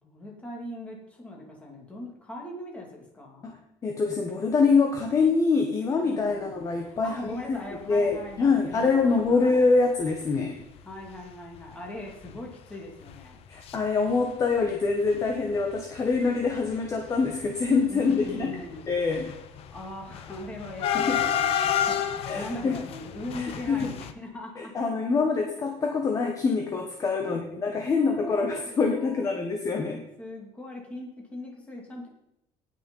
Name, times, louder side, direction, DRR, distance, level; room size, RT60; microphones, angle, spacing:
voice 1, 0.0-3.5 6.1-6.5 6.8-9.5 10.8-13.4 17.9-18.9 19.7-24.7 27.2-27.4 28.0-29.3 30.2-32.1, left 1 dB, 10° left, -1 dB, 2.8 m, -40 dB
voice 2, 3.4-7.6 7.9-10.6 13.5-18.6 18.9-19.3 20.9-21.2 22.3-22.7 23.4-23.9 24.6-30.0, left 4 dB, 25° left, 3 dB, 1.3 m, -25 dB
sound 1, 8.1-8.3 8.8-8.9 9.1-9.3 10.1-10.2 10.6-10.8 11.1-11.2 11.5-13.8 14.0-14.7 15.0-24.1, left 9 dB, 50° left, 1.0 m, -31 dB
18.0 x 6.6 x 5.6 m, 0.83 s
cardioid pair, 175°, 13 cm